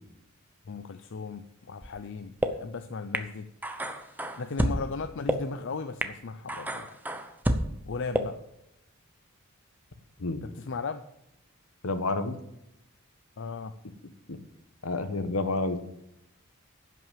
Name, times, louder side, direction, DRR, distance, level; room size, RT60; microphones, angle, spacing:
voice 1, 0.7-3.5 4.4-6.9 7.9-8.3 10.4-11.0 13.4-13.7, left 4 dB, 55° left, 9 dB, 0.5 m, -36 dB
sound 1, 1.8-1.9 2.4-2.5 3.1-3.2 3.6-4.8 5.3-5.4 6.0-6.1 6.5-7.6 8.1-8.2, right 1 dB, 10° right, 0.7 m, -28 dB
voice 2, 11.8-12.4 14.3-14.4 14.8-15.8, left 2 dB, 75° left, 10 dB, 1.1 m, -29 dB
11.0 x 5.9 x 7.3 m, 0.82 s
head